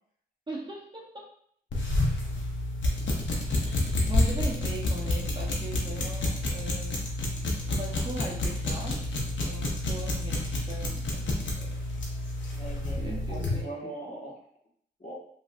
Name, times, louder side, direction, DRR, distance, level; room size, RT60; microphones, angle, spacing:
voice 1, 0.5-1.3 3.0-3.2 3.5-7.2 7.7-11.2 11.5-11.7 13.0-13.7, right 1 dB, 25° right, -3 dB, 0.8 m, -40 dB
sound 1, 1.7-13.6, left 1 dB, 75° left, 0.8 m, -29 dB
voice 2, 12.6-14.4 15.0-15.1, right 1 dB, 40° left, -5 dB, 1.4 m, -41 dB
3.0 x 2.6 x 2.5 m, 0.65 s
cardioid pair, 50°, 19 cm